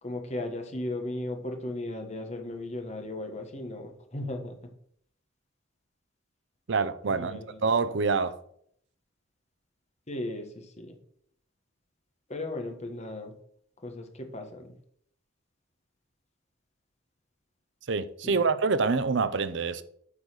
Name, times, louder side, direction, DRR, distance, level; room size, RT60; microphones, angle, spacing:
voice 1, 0.0-4.6 7.1-7.6 10.1-11.0 12.3-13.3 13.8-14.7 18.2-18.4, left 1 dB, 35° left, 1.3 m, -36 dB
voice 2, 6.7-8.4 17.9-19.8, right 4 dB, 65° right, 0.6 m, -26 dB
8.5 x 4.0 x 6.6 m
head